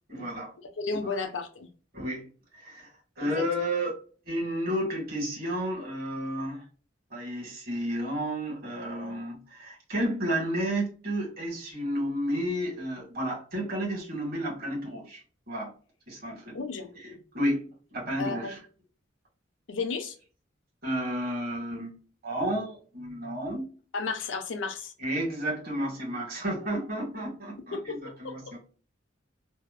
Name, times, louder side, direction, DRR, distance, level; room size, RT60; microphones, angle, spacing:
voice 1, 0.1-0.5 1.0-1.1 1.9-2.9 3.2-3.9 4.3-6.6 7.1-15.7 16.1-16.6 17.1-18.6 20.8-21.9 22.2-23.7 25.0-28.6, equal, 55° right, 1.4 m, -32 dB
voice 2, 0.8-1.7 3.2-3.5 16.5-16.9 18.2-18.6 19.7-20.2 23.9-24.9 27.7-28.4, left 4 dB, 80° left, 0.6 m, -33 dB
2.7 x 2.0 x 2.3 m
head